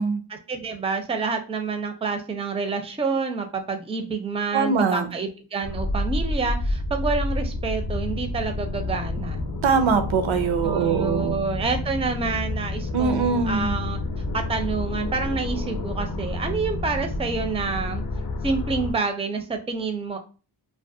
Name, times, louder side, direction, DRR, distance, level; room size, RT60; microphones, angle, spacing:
voice 1, 0.3-9.4 10.6-14.0 14.3-18.0 18.4-20.2, right 4 dB, 15° right, 6 dB, 0.4 m, -28 dB
voice 2, 4.5-5.1 9.6-11.4 12.9-13.7, right 5 dB, 80° right, 8 dB, 0.5 m, -22 dB
sound 1, 5.6-18.9, left 2 dB, 45° left, 0.5 m, -29 dB
2.3 x 2.2 x 2.6 m, 0.35 s
cardioid pair, 40°, 47 cm